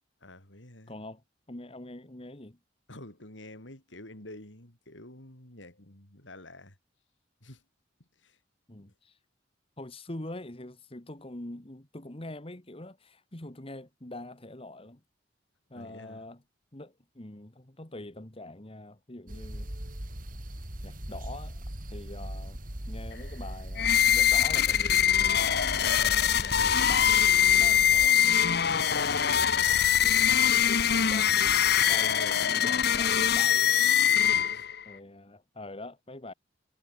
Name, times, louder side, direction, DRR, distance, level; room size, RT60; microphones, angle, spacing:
voice 1, 0.2-0.9 2.9-6.8 7.4-7.6 8.2-8.4 8.8-8.9 15.7-16.2 27.6-28.0 34.2-34.7, left 1 dB, 85° left, 6.1 m, -49 dB
voice 2, 0.9-2.6 8.7-9.2 9.8-15.0 15.7-16.4 16.7-19.7 20.8-22.6 22.9-29.3 30.0-34.0 34.9-36.3, left 2 dB, 30° left, 1.8 m, -44 dB
sound 1, 19.3-28.1, right 1 dB, 50° right, 4.0 m, -39 dB
sound 2, 23.8-34.8, left 9 dB, 60° left, 1.1 m, -23 dB
head